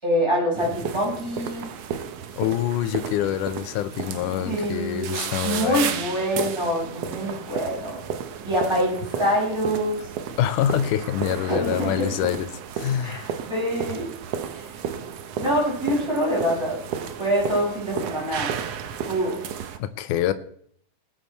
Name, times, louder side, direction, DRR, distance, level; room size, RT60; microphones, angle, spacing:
voice 1, 0.0-1.7 4.1-8.1 8.4-10.1 11.5-12.1 13.0-13.2 13.5-14.1 14.5-14.6 15.4-16.8 17.2-18.5 19.0-19.4, equal, 10° right, 5.9 m, -25 dB
sound 1, 0.6-19.8, right 8 dB, 65° right, 1.7 m, -33 dB
voice 2, 2.4-5.9 10.4-13.3 19.8-20.3, left 11 dB, 85° left, 2.2 m, -26 dB
20.5 x 8.1 x 4.3 m
omnidirectional pair, 3.6 m